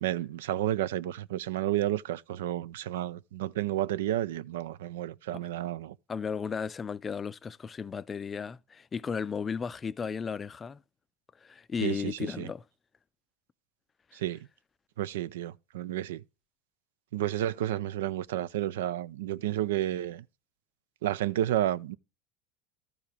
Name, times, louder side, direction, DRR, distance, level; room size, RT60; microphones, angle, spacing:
voice 1, 0.0-5.9 11.8-12.5 14.1-14.4 15.0-16.2 17.1-20.2 21.0-22.0, right 13 dB, 85° right, 0.4 m, -31 dB
voice 2, 6.1-10.8 11.4-12.6, left 6 dB, 20° left, 0.4 m, -34 dB
13.0 x 4.8 x 4.9 m
supercardioid pair, 120°, 0 cm